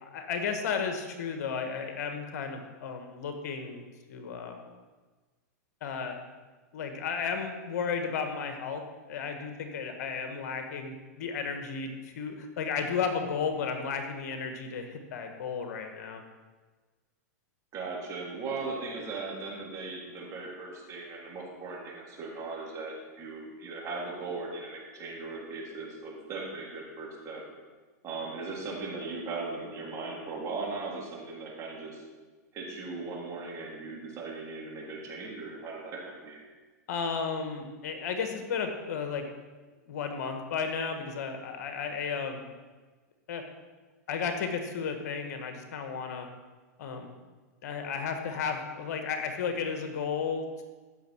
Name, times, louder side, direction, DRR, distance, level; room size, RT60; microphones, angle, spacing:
voice 1, 0.0-3.8 4.1-4.6 5.8-6.2 6.7-16.2 36.9-39.2 39.9-42.4 43.3-43.4 44.1-46.3 46.8-47.1 47.6-50.6, left 6 dB, 65° left, 5 dB, 1.5 m, -33 dB
voice 2, 17.7-27.4 28.0-32.0 32.5-36.4, right 3 dB, 35° right, -3 dB, 3.7 m, -38 dB
16.0 x 6.5 x 4.6 m, 1.3 s
hypercardioid pair, 105°, 9 cm